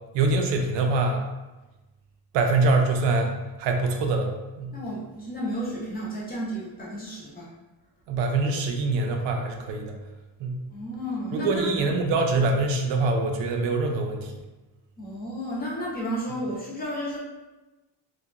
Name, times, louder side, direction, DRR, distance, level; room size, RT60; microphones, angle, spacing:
voice 1, 0.1-1.3 2.3-3.3 3.6-4.3 4.6-4.8 8.1-10.0 10.4-10.6 11.3-14.3, right 3 dB, 85° right, 3 dB, 0.5 m, -24 dB
voice 2, 4.7-7.5 10.7-11.6 15.0-17.2, equal, 25° left, -6 dB, 0.4 m, -32 dB
2.8 x 2.2 x 2.3 m, 1.1 s
cardioid pair, 175°, 43 cm